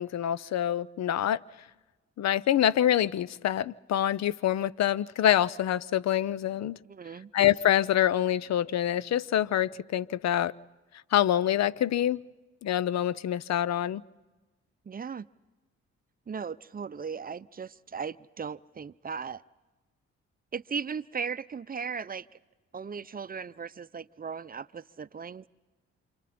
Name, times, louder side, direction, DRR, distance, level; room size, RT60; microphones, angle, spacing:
voice 1, 0.0-1.4 2.2-6.8 7.3-10.5 11.1-12.2 12.6-14.0, left 11 dB, 60° left, 0.6 m, -26 dB
voice 2, 6.8-7.3 14.8-15.2 16.3-19.4 20.5-22.3 22.7-25.5, right 6 dB, 30° right, 0.6 m, -37 dB
28.5 x 27.0 x 4.3 m
supercardioid pair, 55°, 30 cm